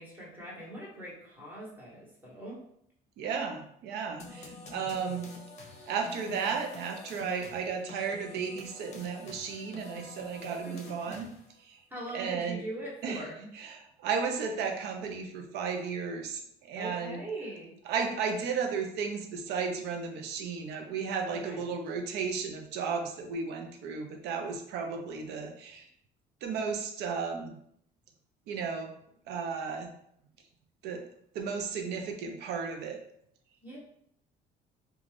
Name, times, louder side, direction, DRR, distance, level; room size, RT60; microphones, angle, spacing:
voice 1, 0.0-2.6 10.7-10.8 11.0-11.1 11.9-13.5 16.7-17.7 21.4-21.7 33.6-33.8, right 1 dB, 10° right, -5 dB, 1.1 m, -41 dB
voice 2, 3.2-5.3 5.9-11.2 11.6-11.8 12.1-12.6 13.0-13.2 13.5-17.2 17.9-25.9 26.4-27.6 28.5-28.9 29.3-29.9 30.8-31.0 31.3-33.0, right 5 dB, 80° right, 4 dB, 0.5 m, -34 dB
sound 1, 4.2-11.6, left 3 dB, 40° left, 0.7 m, -47 dB
2.5 x 2.3 x 3.2 m, 0.70 s
cardioid pair, 110°, 17 cm